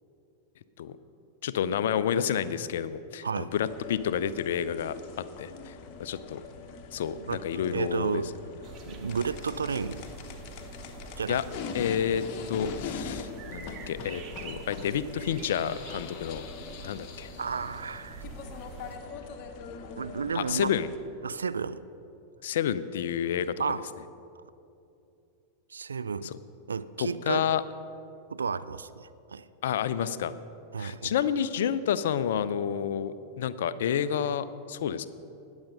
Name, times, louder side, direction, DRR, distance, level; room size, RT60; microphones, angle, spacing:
voice 1, 1.4-5.7 6.0-6.4 6.9-8.2 11.3-11.5 11.7-16.4 16.8-17.3 20.3-20.9 22.4-23.8 26.2-26.3 27.0-27.6 29.6-30.3 30.8-35.1, left 8 dB, 60° left, 15 dB, 0.5 m, -30 dB
sound 1, 3.5-21.0, left 5 dB, 40° left, 1.1 m, -42 dB
voice 2, 7.2-8.3 8.9-10.0 11.2-11.4 16.8-16.9 17.4-18.2 20.0-20.7 21.2-21.8 23.6-23.8 25.7-26.3 26.7-27.4 28.3-29.5 30.7-31.1, right 5 dB, 70° right, 14 dB, 0.4 m, -32 dB
sound 2, 8.6-19.0, right 5 dB, 35° right, 1.1 m, -46 dB
19.5 x 7.2 x 5.3 m, 2.7 s
figure-of-eight pair, 90°, 0 cm